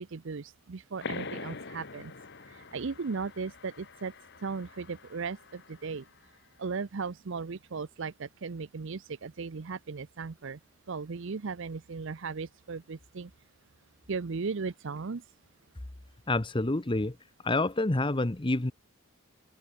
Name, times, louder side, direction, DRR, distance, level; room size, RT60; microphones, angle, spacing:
voice 1, 0.0-2.1 2.5-4.1 4.4-6.0 6.6-10.6 10.9-13.3 14.1-15.2, right 4 dB, 60° right, 0.6 m, -37 dB
sound 1, 1.0-6.2, left 4 dB, 55° left, 1.6 m, -44 dB
voice 2, 16.3-17.2 17.4-18.7, left 2 dB, 25° left, 0.9 m, -28 dB
head